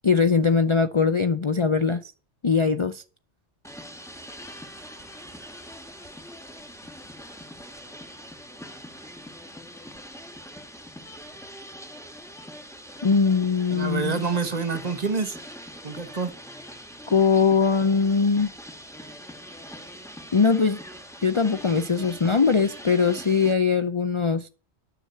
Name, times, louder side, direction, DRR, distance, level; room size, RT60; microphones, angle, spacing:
voice 1, 0.0-2.1 2.4-3.0 13.0-14.2 17.1-18.5 20.3-20.8 21.2-24.5, left 5 dB, 35° left, 0.5 m, -21 dB
sound 1, 3.6-23.5, equal, 5° left, 1.3 m, -43 dB
voice 2, 13.7-15.4 15.8-16.3, right 4 dB, 40° right, 1.1 m, -27 dB
9.9 x 6.6 x 7.7 m
omnidirectional pair, 1.2 m